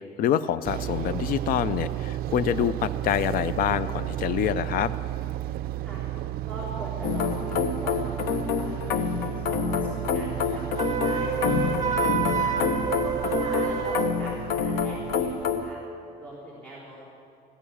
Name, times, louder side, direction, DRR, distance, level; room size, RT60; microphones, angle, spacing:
voice 1, 0.2-4.9, left 10 dB, 55° left, 16 dB, 0.5 m, -26 dB
sound 1, 0.7-15.7, right 13 dB, 60° right, 0.4 m, -33 dB
voice 2, 5.4-6.1 6.5-12.6 13.0-15.8 16.2-17.0, right 1 dB, 10° left, -8 dB, 3.7 m, -42 dB
sound 2, 7.0-15.7, left 6 dB, 80° left, 1.0 m, -28 dB
Wind instrument woodwind instrument, 10.8-14.2, right 7 dB, 20° right, 1.8 m, -28 dB
14.5 x 10.0 x 8.6 m, 2.5 s
cardioid pair, 130°, 18 cm